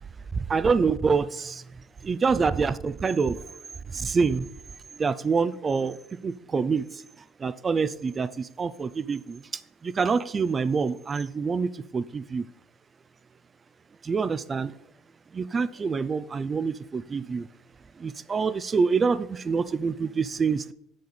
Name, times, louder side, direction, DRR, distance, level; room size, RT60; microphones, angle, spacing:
voice 1, 0.3-1.6 2.0-3.5 3.9-4.5 4.9-6.0 6.2-7.0 7.4-12.5 14.0-14.7 15.3-17.5 18.0-20.7, right 5 dB, 30° right, 16 dB, 0.4 m, -26 dB
6.8 x 6.6 x 4.1 m, 0.77 s
supercardioid pair, 100°, 0 cm